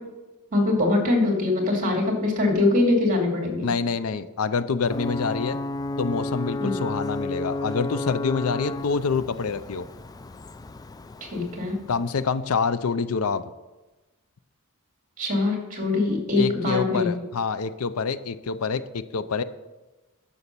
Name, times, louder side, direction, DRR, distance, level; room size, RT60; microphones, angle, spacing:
voice 1, 0.5-3.7 6.6-6.8 11.2-11.8 15.2-17.1, left 2 dB, 40° right, 1 dB, 2.8 m, -23 dB
voice 2, 3.6-5.6 6.0-9.9 11.9-13.4 16.4-19.4, left 5 dB, 75° left, 14 dB, 0.5 m, -26 dB
Ocean / Boat Water vehicle / Alarm, 4.8-12.4, left 2 dB, 20° left, 0.3 m, -33 dB
11.5 x 7.0 x 6.8 m, 1.1 s
head